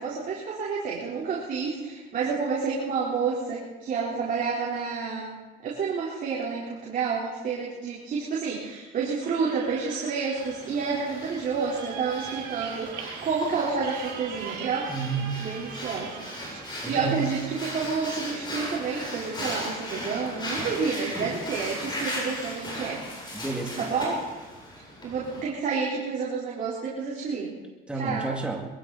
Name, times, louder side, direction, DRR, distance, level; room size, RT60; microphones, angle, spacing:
voice 1, 0.0-5.4 5.6-14.9 15.4-16.1 16.9-23.0 23.8-24.2 25.0-27.5 27.9-28.3, right 5 dB, 55° right, -6 dB, 4.3 m, -29 dB
sound 1, 9.2-17.1, right 8 dB, 75° right, 2.0 m, -42 dB
Breathing, 10.4-25.4, left 1 dB, 25° left, 7.7 m, -37 dB
voice 2, 14.9-15.4 16.8-17.2 23.3-23.9 27.9-28.7, right 4 dB, 5° right, -1 dB, 2.5 m, -30 dB
22.5 x 15.5 x 4.3 m, 1.2 s
cardioid pair, 110°, 17 cm